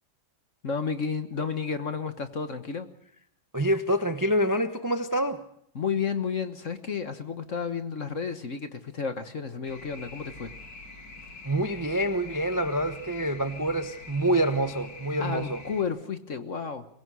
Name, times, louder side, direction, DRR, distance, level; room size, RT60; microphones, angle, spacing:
voice 1, 0.6-2.9 5.7-10.5 15.2-16.9, left 6 dB, 45° left, 1.5 m, -32 dB
voice 2, 3.5-5.4 11.4-15.6, right 1 dB, 15° right, 0.7 m, -26 dB
sound 1, 9.6-15.8, left 3 dB, 60° left, 3.1 m, -45 dB
23.0 x 22.0 x 6.3 m
omnidirectional pair, 2.1 m